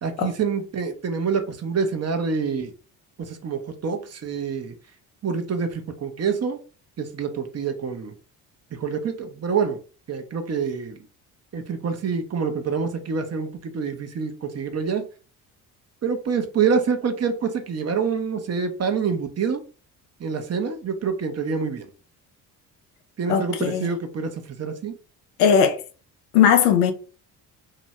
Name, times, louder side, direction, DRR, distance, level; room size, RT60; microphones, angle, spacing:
voice 1, 0.0-2.7 3.2-4.7 5.2-6.6 7.0-8.1 8.8-9.8 10.1-11.0 11.5-15.1 16.0-19.6 20.2-21.9 23.2-25.0, right 6 dB, 35° right, 0.8 m, -26 dB
voice 2, 23.3-23.9 25.4-25.8 26.3-26.9, left 8 dB, 85° left, 0.6 m, -18 dB
2.8 x 2.6 x 3.2 m
hypercardioid pair, 55°, 45 cm